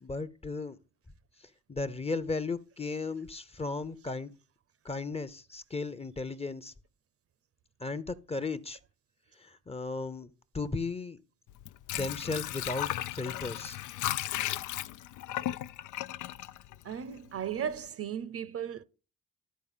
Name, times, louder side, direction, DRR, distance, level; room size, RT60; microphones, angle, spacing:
voice 1, 0.0-0.8 1.4-4.3 4.8-6.7 7.8-8.8 9.3-10.3 10.5-11.2 11.9-13.8, left 3 dB, 20° left, 0.7 m, -35 dB
Water / Sink (filling or washing), 11.5-17.4 17.7-17.8, left 13 dB, 80° left, 0.5 m, -35 dB
voice 2, 16.8-18.8, right 8 dB, 50° right, 0.7 m, -36 dB
11.5 x 4.4 x 5.5 m
cardioid pair, 90°, 30 cm